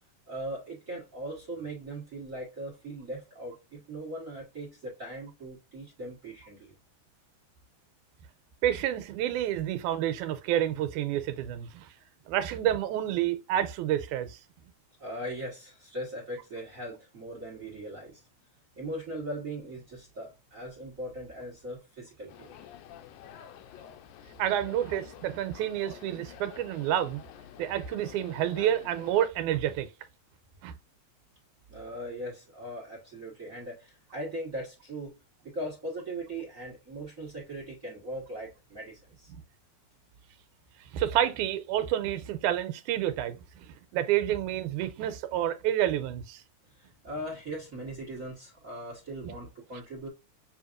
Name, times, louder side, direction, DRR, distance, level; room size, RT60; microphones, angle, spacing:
voice 1, 0.3-6.7 15.0-18.2 18.8-22.6 31.7-35.2 35.4-39.3 46.7-50.1, right 1 dB, 40° right, 1.1 m, -39 dB
voice 2, 8.6-11.9 12.3-14.4 24.4-27.2 27.6-29.9 30.6-30.7 39.3-39.4 40.9-43.4 43.9-46.4 49.2-49.3, right 11 dB, 90° right, 2.1 m, -29 dB
sound 1, 22.3-29.3, left 10 dB, 80° left, 2.0 m, -49 dB
7.0 x 2.8 x 2.5 m
omnidirectional pair, 3.5 m